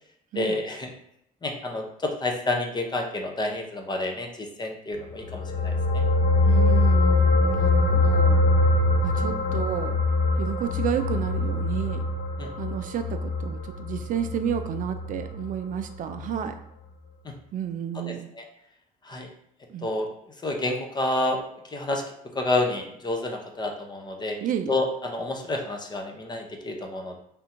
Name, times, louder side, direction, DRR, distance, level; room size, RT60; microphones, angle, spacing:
voice 1, 0.3-0.9 1.4-5.7 12.4-12.5 18.1-18.2 19.1-19.3 19.8-20.1 20.4-21.4 21.7-22.0 22.4-24.4 24.7-27.2, left 2 dB, 25° left, 2 dB, 0.7 m, -29 dB
sound 1, 5.1-15.8 16.2-16.3, left 2 dB, 55° left, 0.7 m, -23 dB
voice 2, 6.5-8.4 9.0-10.0 10.4-12.0 12.6-16.6 17.5-18.3 19.7-19.9 24.4-24.8, right 9 dB, 50° right, 7 dB, 0.4 m, -31 dB
3.5 x 2.7 x 4.3 m, 0.77 s
cardioid pair, 110°, 17 cm